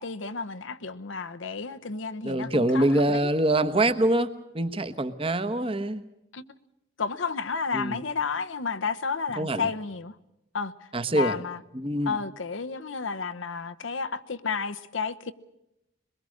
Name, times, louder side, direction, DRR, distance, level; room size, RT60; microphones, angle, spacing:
voice 1, 0.0-3.3 6.3-6.4 7.0-10.1 10.5-10.7 11.1-11.6 12.1-15.3, left 5 dB, 90° left, 1.1 m, -31 dB
voice 2, 2.2-4.3 4.5-6.0 7.7-8.0 9.4-9.7 10.9-11.4 11.7-12.1, right 1 dB, 30° right, 1.2 m, -24 dB
22.5 x 22.0 x 6.5 m
head